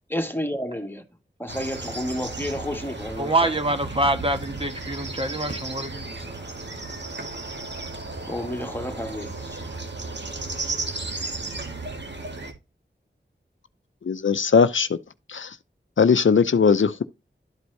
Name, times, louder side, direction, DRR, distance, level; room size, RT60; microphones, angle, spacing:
voice 1, 0.1-1.0 1.4-3.5 8.3-9.6, equal, 10° left, 1.7 m, -31 dB
sound 1, 1.5-12.5, right 3 dB, 65° right, 1.9 m, -34 dB
voice 2, 3.2-6.2, right 2 dB, 30° right, 1.3 m, -25 dB
voice 3, 14.1-14.9 15.3-15.5 16.0-17.0, left 5 dB, 85° left, 0.6 m, -19 dB
12.0 x 4.6 x 2.7 m
wide cardioid pair, 50°, 19 cm